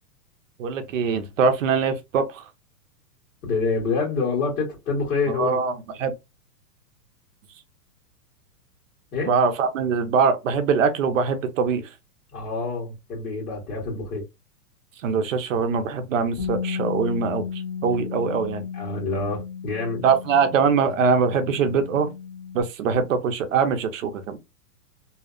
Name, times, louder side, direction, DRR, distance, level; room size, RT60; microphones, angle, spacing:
voice 1, 0.6-2.5 5.3-6.1 9.3-11.9 15.0-18.7 20.0-22.1 22.5-24.4, right 5 dB, 55° right, 0.6 m, -23 dB
voice 2, 3.4-5.6 9.1-9.3 12.3-14.2 18.7-20.0, left 4 dB, 55° left, 1.5 m, -27 dB
Bass guitar, 16.4-22.6, left 7 dB, 30° left, 0.8 m, -34 dB
2.7 x 2.0 x 2.4 m
hypercardioid pair, 165°, 48 cm